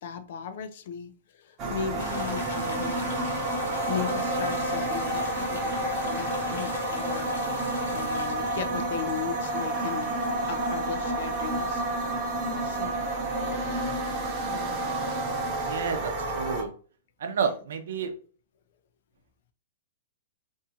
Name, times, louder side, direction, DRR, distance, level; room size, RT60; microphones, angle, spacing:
voice 1, 0.0-3.1 3.9-7.7 7.9-10.1 10.4-11.8 12.4-13.0 14.4-15.0 17.4-17.5, left 8 dB, 55° left, 10 dB, 0.5 m, -37 dB
sound 1, 1.6-16.6, right 2 dB, 25° right, 0.7 m, -29 dB
sound 2, 2.0-11.7, left 4 dB, 80° left, 1.0 m, -44 dB
voice 2, 15.6-16.7 17.2-18.1, right 6 dB, 75° right, 7 dB, 0.6 m, -30 dB
3.5 x 2.7 x 2.8 m, 0.40 s
hypercardioid pair, 165°, 0 cm